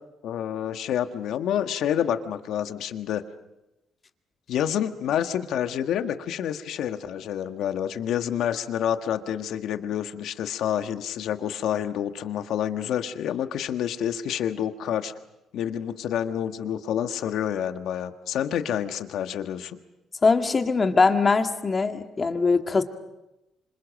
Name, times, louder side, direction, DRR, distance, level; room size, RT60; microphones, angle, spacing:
voice 1, 0.2-3.2 4.5-15.1 15.5-19.8, left 10 dB, 80° left, 8 dB, 1.5 m, -28 dB
voice 2, 20.2-22.8, left 4 dB, 35° left, 6 dB, 2.0 m, -21 dB
27.0 x 26.0 x 6.5 m, 0.96 s
cardioid pair, 90°, 0 cm